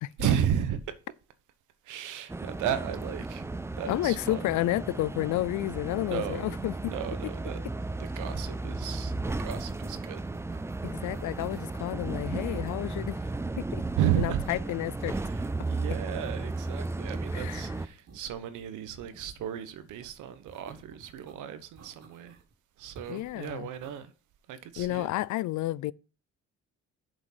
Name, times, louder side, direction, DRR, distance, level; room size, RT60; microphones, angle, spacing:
voice 1, 0.2-0.9 1.8-3.5 3.8-4.4 6.0-7.6 8.0-10.2 13.9-14.4 15.1-22.4 22.8-24.1 24.5-25.1, right 9 dB, 90° right, 1.0 m, -34 dB
sound 1, 2.3-17.9, right 2 dB, 10° right, 0.4 m, -35 dB
voice 2, 3.9-6.9 10.8-13.2 13.6-13.8 14.2-15.1 17.3-17.7 23.1-23.7 24.8-25.9, left 16 dB, 75° left, 0.4 m, -31 dB
sound 2, 9.7-9.8 10.0-11.8 12.4-13.4 13.7-14.7 15.0-16.8 17.2-18.2 20.5-21.3 21.8-22.5 22.9-24.0 24.8-25.2, right 4 dB, 60° right, 2.3 m, -56 dB
sound 3, 17.8-21.7, right 3 dB, 35° right, 1.8 m, -60 dB
7.5 x 5.2 x 5.7 m
cardioid pair, 90°, 30 cm